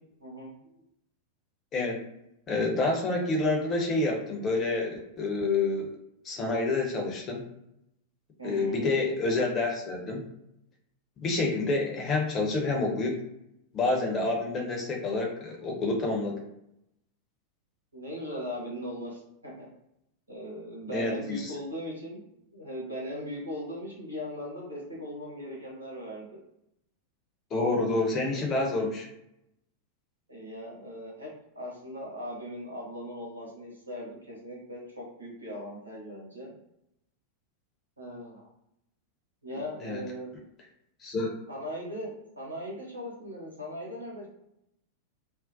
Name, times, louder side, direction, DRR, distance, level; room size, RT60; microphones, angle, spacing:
voice 1, 0.2-0.5 8.4-8.8 17.9-19.7 20.3-22.2 22.5-26.4 27.9-28.5 30.3-31.3 31.5-36.5 38.0-38.5 39.4-40.3 41.5-44.3, equal, 85° right, -5 dB, 1.0 m, -39 dB
voice 2, 1.7-2.1 2.5-6.0 6.2-7.5 8.4-10.3 11.2-13.2 13.7-16.4 20.9-21.5 27.5-29.1 39.8-40.0 41.0-41.3, left 3 dB, 30° left, 1 dB, 0.7 m, -28 dB
2.5 x 2.0 x 2.5 m, 0.80 s
figure-of-eight pair, 90°, 0 cm